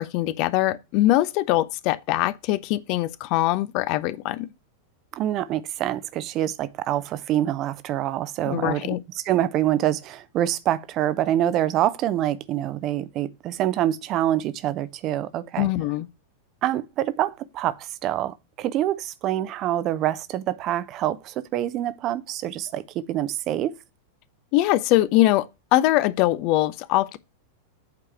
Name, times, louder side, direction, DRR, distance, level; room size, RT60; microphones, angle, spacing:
voice 1, 0.0-4.5 8.5-9.0 15.6-16.1 24.5-27.2, left 16 dB, 45° left, 0.6 m, -22 dB
voice 2, 5.1-8.9 9.2-15.7 16.6-23.7, right 12 dB, 35° right, 0.7 m, -26 dB
8.4 x 4.8 x 5.9 m
figure-of-eight pair, 90°, 0 cm